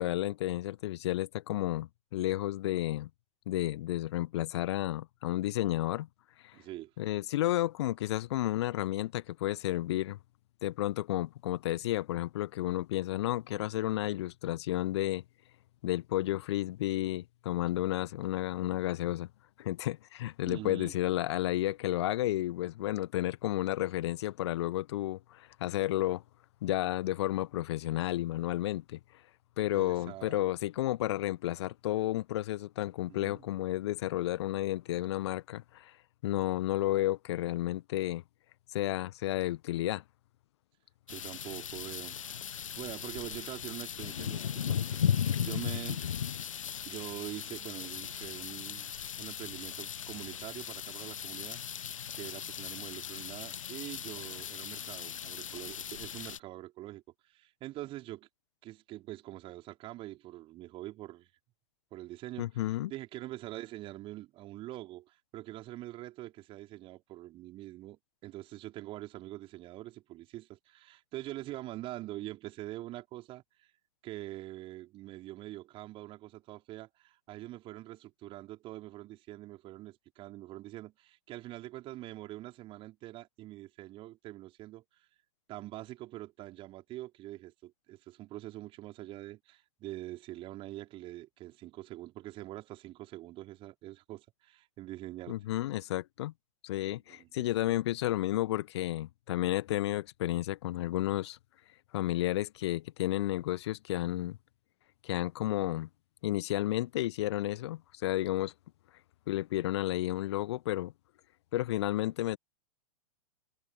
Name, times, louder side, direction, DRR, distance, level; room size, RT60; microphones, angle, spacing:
voice 1, 0.0-3.1 3.5-6.1 6.4-6.5 7.0-10.2 10.6-15.2 15.8-19.3 19.6-26.2 26.6-29.0 29.6-35.9 36.2-38.2 38.7-40.0 62.4-62.9 95.3-96.3 96.6-101.4 101.9-104.4 105.0-105.9 106.2-108.5 109.3-110.9 111.5-112.4, left 15 dB, 50° left, 1.6 m, -32 dB
voice 2, 6.5-6.9 20.5-20.9 29.7-30.5 33.1-33.5 41.1-42.2 42.8-46.0 46.9-51.6 52.1-58.3 58.6-61.3 61.9-62.5 62.9-73.7 74.0-84.8 85.5-95.4 97.1-97.3, right 16 dB, 30° right, 5.4 m, -44 dB
sound 1, 41.1-56.4, left 8 dB, 65° left, 0.9 m, -37 dB
figure-of-eight pair, 105°, 18 cm